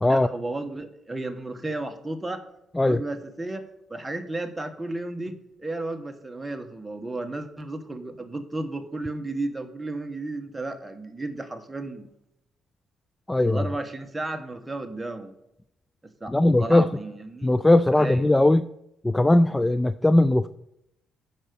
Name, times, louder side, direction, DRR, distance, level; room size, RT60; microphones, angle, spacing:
voice 1, 0.1-2.4 2.8-3.6 3.9-5.3 5.6-12.1 13.4-15.3 16.2-17.5 17.9-18.3, right 2 dB, 10° right, 5 dB, 1.3 m, -33 dB
voice 2, 13.3-13.6 16.3-16.9 17.4-18.6 19.0-20.5, left 1 dB, 10° left, 14 dB, 0.3 m, -19 dB
8.7 x 5.7 x 6.8 m, 0.81 s
cardioid pair, 90°, 0 cm